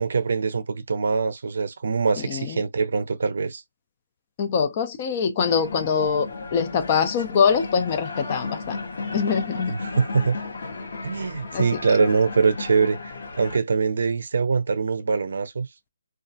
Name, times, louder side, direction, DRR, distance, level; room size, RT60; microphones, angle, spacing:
voice 1, 0.0-3.6 9.7-10.4 11.0-15.7, right 5 dB, 60° right, 0.5 m, -23 dB
voice 2, 2.2-2.6 4.4-8.8 9.1-9.7 11.5-11.7, left 6 dB, 25° left, 0.4 m, -23 dB
sound 1, 5.4-13.6, left 3 dB, 60° left, 0.8 m, -34 dB
2.2 x 2.0 x 2.7 m
hypercardioid pair, 170°, 0 cm